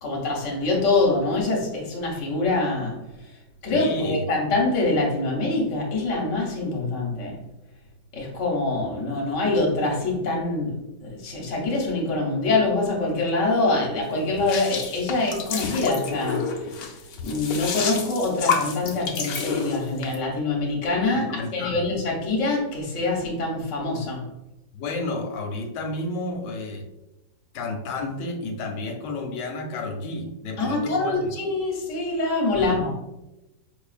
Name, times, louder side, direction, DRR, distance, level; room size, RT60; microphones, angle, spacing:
voice 1, 0.0-3.4 3.6-7.4 8.1-16.8 17.2-24.3 30.6-33.1, left 2 dB, 50° left, -2 dB, 1.1 m, -25 dB
voice 2, 3.7-4.2 21.1-21.9 24.7-26.8 27.5-31.3 32.5-32.8, left 2 dB, 90° left, 3 dB, 1.3 m, -31 dB
sound 1, 14.4-20.2, left 5 dB, 70° left, 0.9 m, -29 dB
5.0 x 2.3 x 2.4 m, 0.97 s
omnidirectional pair, 1.9 m